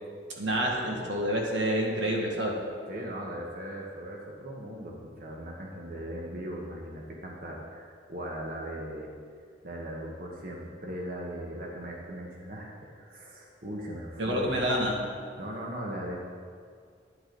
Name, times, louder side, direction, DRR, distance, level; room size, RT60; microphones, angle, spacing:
voice 1, 0.4-2.6 14.2-14.9, equal, 90° right, -1 dB, 1.9 m, -28 dB
voice 2, 2.9-9.1 9.6-12.7 13.0-14.5 15.4-16.2, right 1 dB, 50° right, -2 dB, 1.4 m, -39 dB
11.5 x 10.0 x 4.0 m, 2.1 s
head